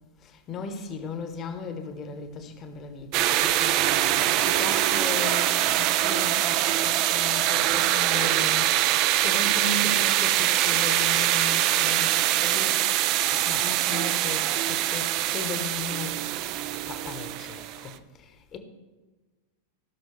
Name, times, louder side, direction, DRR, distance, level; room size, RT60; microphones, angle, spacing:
voice 1, 0.5-8.6 9.2-12.8 13.3-16.1 16.9-17.9 18.5-18.6, left 4 dB, 30° left, 7 dB, 1.1 m, -36 dB
sound 1, 3.1-17.9, right 13 dB, 40° right, 0.4 m, -24 dB
15.0 x 6.0 x 3.3 m, 1.3 s
figure-of-eight pair, 90°, 0 cm